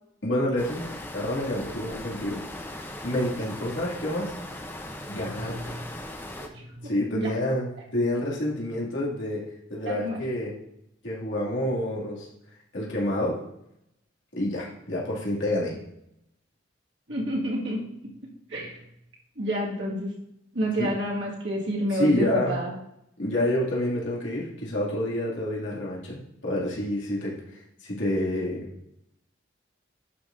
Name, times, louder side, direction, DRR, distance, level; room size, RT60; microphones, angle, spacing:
voice 1, 0.2-0.8 1.1-2.4 3.0-4.3 5.1-5.7 6.8-9.4 9.7-10.5 11.0-12.3 12.7-13.4 14.3-15.8 20.8-20.9 21.9-22.6 23.2-26.2 26.4-27.4 27.8-28.7, left 1 dB, 80° left, -5 dB, 2.2 m, -28 dB
sound 1, 0.6-6.5, left 1 dB, 10° left, 0.6 m, -39 dB
voice 2, 5.3-5.9 6.4-7.3 9.9-10.2 17.1-17.8 18.5-18.8 19.4-20.1 20.5-22.7, right 1 dB, 65° right, -3 dB, 1.8 m, -29 dB
11.0 x 5.8 x 2.6 m, 0.80 s
head